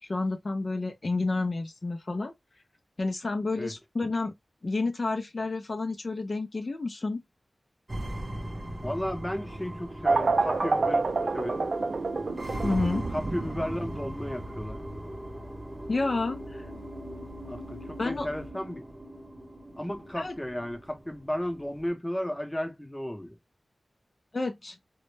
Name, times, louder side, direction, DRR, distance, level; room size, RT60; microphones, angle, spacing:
voice 1, 0.0-2.3 3.0-4.3 4.6-7.2 12.6-13.0 15.9-16.7 18.0-18.3 20.1-20.3 24.3-24.8, left 3 dB, 50° left, 0.3 m, -30 dB
sound 1, 7.9-21.9, right 1 dB, 30° right, 0.7 m, -39 dB
voice 2, 8.8-11.6 13.1-14.8 17.5-18.8 19.8-23.4, equal, 15° left, 0.7 m, -34 dB
sound 2, 10.0-18.5, right 3 dB, 65° right, 0.4 m, -30 dB
2.1 x 2.0 x 3.1 m
wide cardioid pair, 60°, 0 cm